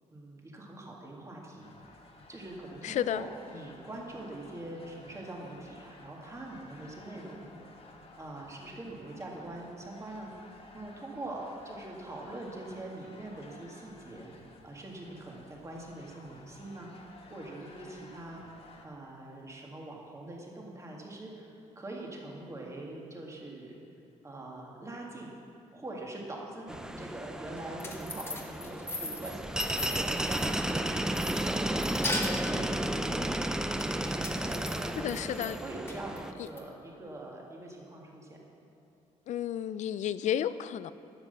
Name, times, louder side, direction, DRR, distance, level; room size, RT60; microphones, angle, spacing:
voice 1, 0.1-2.0 2.3-7.6 8.2-10.3 10.7-14.3 14.6-16.9 17.3-18.4 18.8-23.8 24.2-25.3 25.7-33.3 33.9-38.4, right 2 dB, 25° right, 2.0 m, -43 dB
sound 1, 1.6-18.9, left 3 dB, 50° left, 1.3 m, -54 dB
voice 2, 2.8-3.3 35.0-35.6 36.4-36.5 39.3-40.9, left 10 dB, 70° left, 0.4 m, -32 dB
sound 2, 26.7-36.3, right 1 dB, 5° right, 0.5 m, -33 dB
sound 3, 27.6-30.8 31.1-32.7 33.8-35.5 35.9-36.6, left 2 dB, 20° left, 1.5 m, -38 dB
10.0 x 7.5 x 6.8 m
cardioid pair, 95°, 13 cm